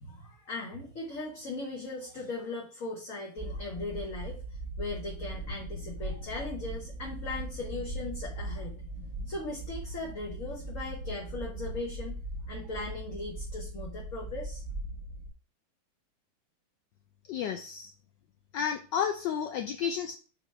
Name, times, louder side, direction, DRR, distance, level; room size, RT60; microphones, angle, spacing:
voice 1, 0.0-4.4 4.8-8.7 9.3-12.2 12.5-14.6, left 2 dB, 45° left, -1 dB, 1.2 m, -38 dB
sound 1, 3.4-15.3, right 1 dB, 45° right, 2.1 m, -39 dB
voice 2, 17.3-17.9 18.5-20.2, left 8 dB, 75° left, 7 dB, 1.0 m, -31 dB
6.8 x 3.0 x 5.5 m, 0.39 s
omnidirectional pair, 2.4 m